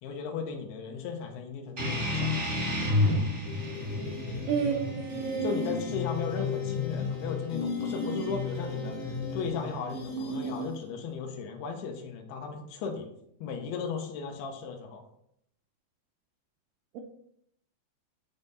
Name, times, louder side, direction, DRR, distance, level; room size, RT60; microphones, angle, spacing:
voice 1, 0.0-2.3 5.4-13.1 13.4-15.0, left 5 dB, 85° left, 2 dB, 2.8 m, -36 dB
sound 1, 1.8-6.8, left 2 dB, 35° right, 1.1 m, -31 dB
sound 2, 3.5-11.0, left 4 dB, 70° left, 3.1 m, -35 dB
voice 2, 4.5-5.6 16.9-17.0, right 7 dB, 80° right, 3 dB, 2.0 m, -30 dB
Bowed string instrument, 4.7-10.7, right 2 dB, 65° right, 1.3 m, -51 dB
9.3 x 3.6 x 4.0 m, 0.72 s
omnidirectional pair, 4.6 m